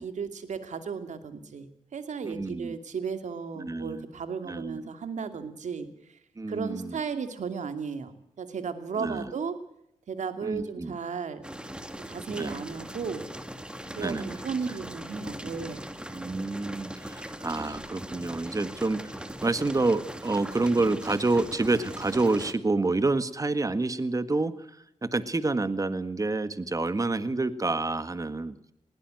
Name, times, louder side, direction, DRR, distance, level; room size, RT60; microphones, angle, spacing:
voice 1, 0.0-5.9 6.5-8.1 8.4-9.6 10.1-11.5 12.0-13.3 14.0-15.8, right 6 dB, 75° right, 9 dB, 2.6 m, -35 dB
voice 2, 2.2-2.8 3.6-4.1 4.4-4.9 6.4-7.0 9.0-9.3 10.4-11.0 12.4-12.6 14.0-14.4 16.1-19.1 19.4-28.6, right 3 dB, 30° right, 12 dB, 1.7 m, -28 dB
sound 1, 11.4-22.5, right 1 dB, 10° right, 2.2 m, -40 dB
20.5 x 17.0 x 7.9 m, 0.76 s
cardioid pair, 70°, 12 cm